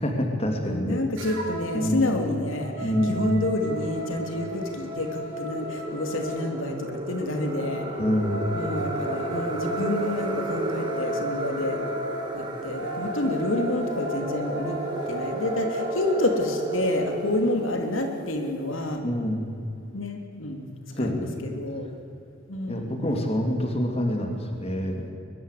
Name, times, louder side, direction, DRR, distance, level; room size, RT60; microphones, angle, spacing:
voice 1, 0.0-1.0 1.7-2.1 2.8-3.3 8.0-8.7 19.0-19.5 20.9-21.4 22.7-25.1, equal, 30° left, 3 dB, 2.9 m, -27 dB
voice 2, 0.6-7.9 8.5-11.8 12.3-14.8 15.1-19.0 19.9-20.7 21.0-21.9 22.5-23.0, left 1 dB, 70° left, 4 dB, 2.9 m, -29 dB
sound 1, 1.2-1.8 2.2-6.4 7.8-16.4, equal, 75° right, 7.1 m, -35 dB
sound 2, 3.7-18.9, right 1 dB, 25° right, 2.9 m, -33 dB
22.5 x 21.5 x 8.5 m, 2.7 s
head